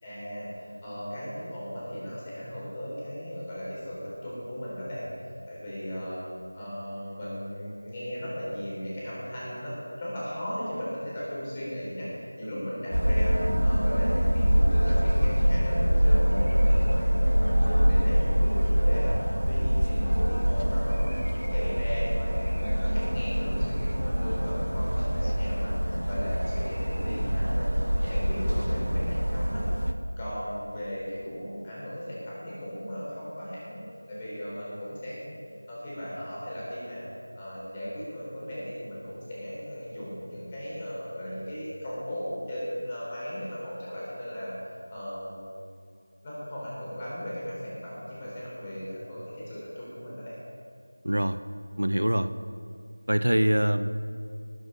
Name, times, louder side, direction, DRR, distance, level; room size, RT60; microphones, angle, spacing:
voice 1, 0.0-5.1 5.4-6.2 6.5-13.3 13.6-27.7 28.0-29.9 30.2-35.4 35.7-37.0 37.3-44.5 44.9-45.4 46.2-50.4, equal, 15° left, -8 dB, 4.0 m, -37 dB
sound 1, 12.9-29.9, equal, 85° right, 1.0 m, -24 dB
voice 2, 51.0-51.4 51.8-52.3 53.1-54.1, right 1 dB, 70° right, 11 dB, 0.6 m, -24 dB
20.0 x 7.2 x 5.5 m, 2.3 s
figure-of-eight pair, 170°, 0 cm